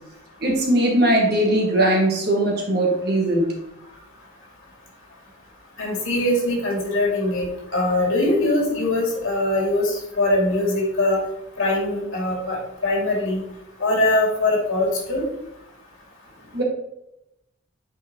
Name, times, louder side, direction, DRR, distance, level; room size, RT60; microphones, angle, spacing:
voice 1, 0.4-3.5 16.5-16.6, right 1 dB, 50° right, -1 dB, 1.5 m, -20 dB
voice 2, 5.8-7.5 7.7-11.2 11.6-13.4 13.8-15.2, left 1 dB, 90° left, -2 dB, 2.4 m, -22 dB
8.3 x 4.3 x 2.9 m, 0.85 s
head